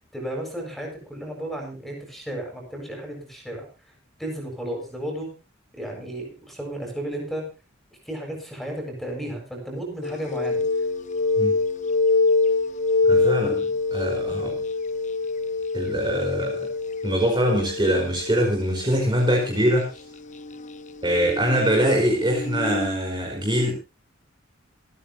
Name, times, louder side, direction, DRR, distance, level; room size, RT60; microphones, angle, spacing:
voice 1, 0.1-3.7 4.2-5.3 5.7-7.4 8.1-10.6, right 1 dB, ahead, 1 dB, 7.4 m, -33 dB
sound 1, 10.0-19.5 20.2-22.9, left 3 dB, 35° left, 0.7 m, -25 dB
voice 2, 13.0-14.6 15.7-16.6 17.0-19.9 21.0-23.7, equal, 25° right, -1 dB, 4.7 m, -23 dB
28.0 x 10.0 x 2.8 m, 0.31 s
head